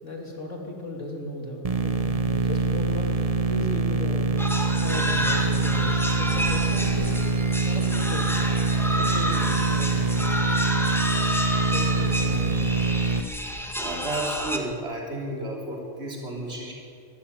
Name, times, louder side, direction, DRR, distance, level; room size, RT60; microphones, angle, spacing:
voice 1, 0.0-4.4 4.8-7.2 7.6-8.3 8.9-10.4 11.6-12.9, left 1 dB, 70° left, 1 dB, 3.7 m, -36 dB
sound 1, 1.6-13.2, right 3 dB, 30° right, 1.0 m, -24 dB
sound 2, 4.4-14.6, equal, ahead, 1.8 m, -29 dB
voice 2, 13.8-16.7, right 1 dB, 50° right, -2 dB, 4.0 m, -32 dB
24.5 x 13.0 x 9.2 m, 2.4 s
omnidirectional pair, 1.3 m